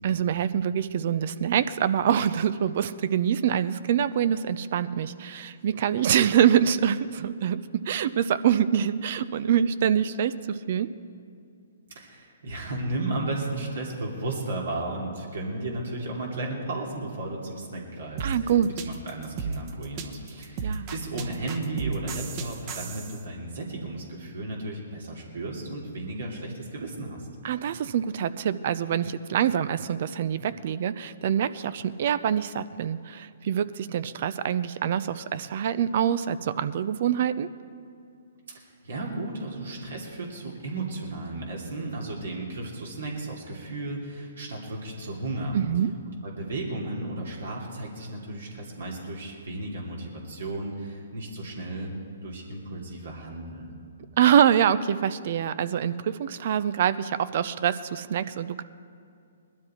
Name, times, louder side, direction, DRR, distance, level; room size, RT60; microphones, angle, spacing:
voice 1, 0.0-10.9 18.2-18.7 20.6-20.9 27.4-37.5 45.5-45.9 54.2-58.6, right 9 dB, 50° right, 14 dB, 0.6 m, -25 dB
voice 2, 11.9-18.5 18.8-27.3 38.5-45.6 46.2-51.9 52.2-53.7, right 2 dB, 75° right, -2 dB, 2.7 m, -34 dB
sound 1, 18.2-23.2, right 5 dB, 35° right, 1.2 m, -34 dB
20.0 x 12.0 x 4.5 m, 2.4 s
hypercardioid pair, 140°, 0 cm